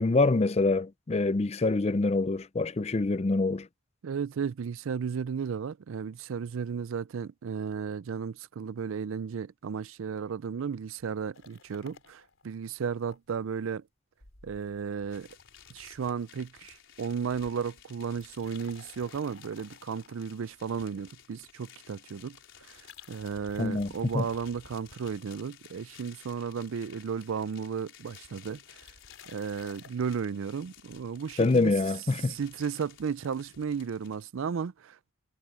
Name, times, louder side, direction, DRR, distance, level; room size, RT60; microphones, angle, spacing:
voice 1, 0.0-3.7 23.6-24.2 31.4-32.3, left 3 dB, 30° left, 0.4 m, -25 dB
voice 2, 4.0-13.8 14.4-15.3 15.7-22.4 22.6-28.8 29.3-31.7 32.2-35.1, right 6 dB, 75° right, 0.4 m, -34 dB
sound 1, 11.3-13.2 13.5-13.6 14.2-17.1 17.3-17.6 18.1-21.4 22.6-25.6 26.1-26.6 26.9-27.0 27.2-27.7 28.8-30.2, left 5 dB, 80° left, 3.7 m, -55 dB
sound 2, 15.1-34.2, left 9 dB, 65° left, 5.0 m, -55 dB
head